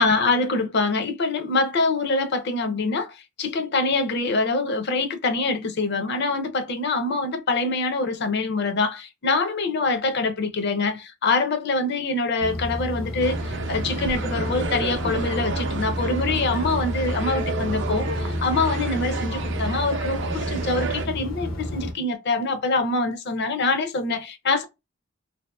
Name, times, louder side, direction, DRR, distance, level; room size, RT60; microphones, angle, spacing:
voice 1, 0.0-24.6, left 3 dB, 55° left, 0.6 m, -25 dB
sound 1, 12.4-21.9, equal, 85° left, 0.8 m, -30 dB
sound 2, 13.2-21.1, right 4 dB, 60° right, 0.5 m, -31 dB
2.7 x 2.5 x 2.2 m
head